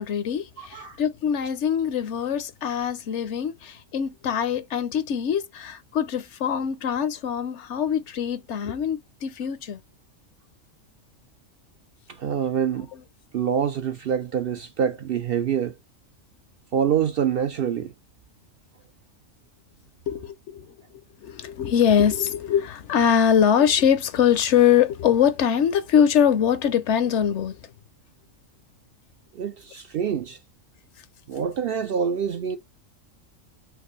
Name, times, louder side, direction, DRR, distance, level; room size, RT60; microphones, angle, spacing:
voice 1, 0.0-9.8 20.1-20.7 21.2-27.5, left 8 dB, 65° left, 0.9 m, -23 dB
voice 2, 0.6-1.0 12.1-12.9 13.3-15.8 16.7-17.9 29.3-30.4 31.3-32.6, right 8 dB, 60° right, 0.6 m, -26 dB
5.9 x 2.6 x 3.1 m
omnidirectional pair, 1.3 m